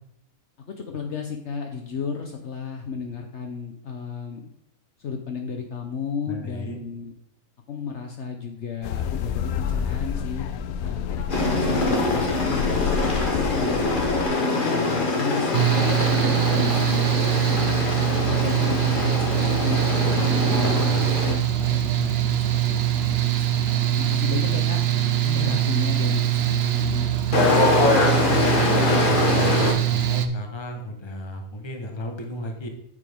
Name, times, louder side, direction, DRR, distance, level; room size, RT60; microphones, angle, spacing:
voice 1, 0.7-4.5 5.0-7.1 7.7-13.1 13.4-13.8 14.2-16.0 16.3-17.2 18.0-24.8 25.3-27.1, left 6 dB, 60° left, 4 dB, 1.0 m, -34 dB
voice 2, 6.2-6.8 20.6-21.1 25.2-25.8 27.4-32.7, left 1 dB, 20° left, 4 dB, 1.1 m, -34 dB
sound 1, 8.8-14.3, left 7 dB, 85° left, 1.1 m, -29 dB
sound 2, 11.3-21.3 27.3-29.7, left 3 dB, 40° left, 1.3 m, -23 dB
Mechanical fan, 15.5-30.3, right 12 dB, 55° right, 0.8 m, -23 dB
8.9 x 6.8 x 3.5 m, 0.70 s
omnidirectional pair, 1.5 m